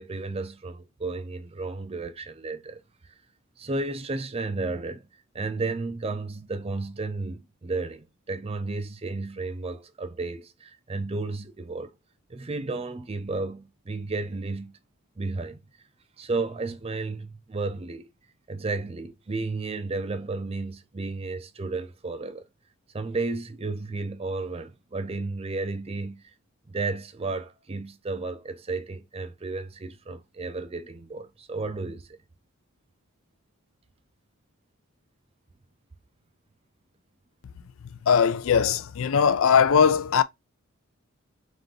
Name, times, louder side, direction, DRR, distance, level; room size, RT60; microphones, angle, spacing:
voice 1, 0.0-2.8 3.6-5.0 5.3-12.0 12.3-14.8 15.2-15.6 16.2-18.1 18.5-22.4 22.9-26.2 26.7-32.1, right 3 dB, 25° right, 0.5 m, -33 dB
voice 2, 37.8-40.2, left 6 dB, 60° left, 0.4 m, -20 dB
3.7 x 3.3 x 3.8 m
head